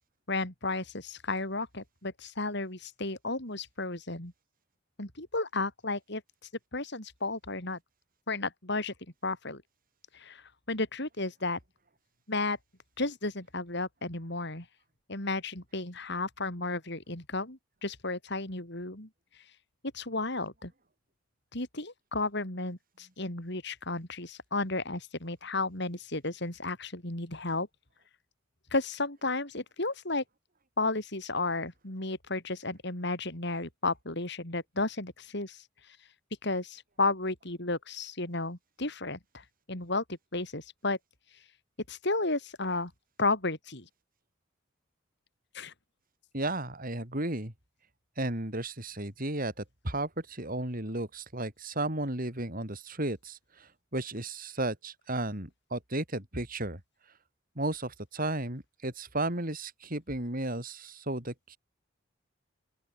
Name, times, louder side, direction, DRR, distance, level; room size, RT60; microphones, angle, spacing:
voice 1, 0.3-4.3 5.0-6.2 6.7-7.8 8.3-8.9 9.2-9.6 10.1-11.6 12.3-12.6 13.0-14.6 15.1-19.1 19.9-20.7 21.5-27.7 28.7-30.2 30.8-36.0 36.4-40.0 40.3-41.0 41.9-42.9 43.2-43.9 45.5-45.7, left 2 dB, 60° left, 5.1 m, -33 dB
voice 2, 46.3-47.5 48.2-57.1 57.5-61.6, right 2 dB, 45° right, 5.1 m, -34 dB
open air
head